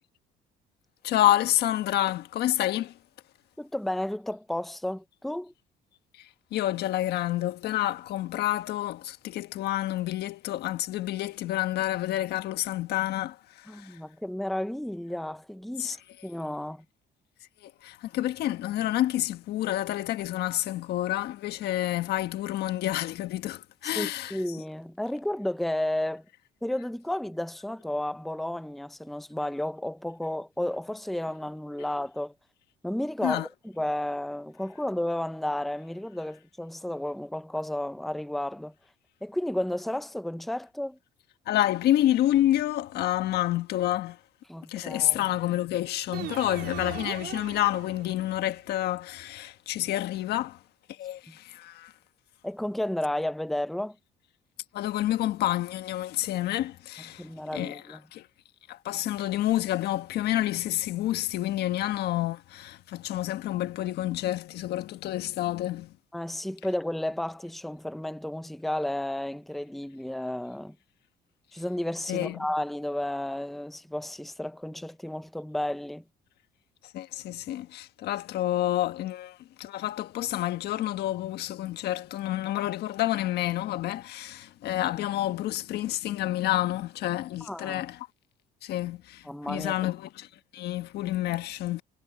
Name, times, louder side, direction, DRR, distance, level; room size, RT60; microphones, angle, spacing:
voice 1, 1.0-2.9 6.2-14.0 15.8-16.0 17.6-24.4 33.2-33.5 41.5-44.2 44.7-50.6 51.0-51.9 54.7-57.3 57.5-58.2 58.7-65.9 72.1-72.4 76.9-88.1 88.6-90.3 90.5-91.8, left 14 dB, 75° left, 1.5 m, -29 dB
voice 2, 3.6-5.5 13.7-16.0 16.2-16.8 24.0-26.2 26.6-32.3 32.8-38.7 39.2-41.0 44.5-45.2 52.4-54.0 57.2-58.0 66.1-70.8 71.5-76.0 87.4-87.8 89.2-89.8, left 1 dB, ahead, 0.7 m, -32 dB
sound 1, 46.1-48.4, right 13 dB, 75° right, 4.2 m, -39 dB
cardioid pair, 110°, 17 cm